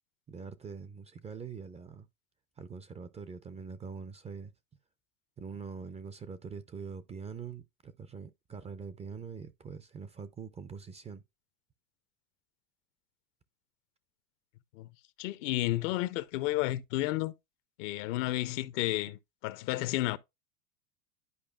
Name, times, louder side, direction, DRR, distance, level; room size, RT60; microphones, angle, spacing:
voice 1, 0.3-2.1 2.6-4.5 5.4-11.2, right 5 dB, 15° right, 0.4 m, -43 dB
voice 2, 15.2-17.3 17.8-20.2, left 17 dB, 65° left, 0.7 m, -32 dB
11.0 x 4.7 x 2.3 m
hypercardioid pair, 105°, 41 cm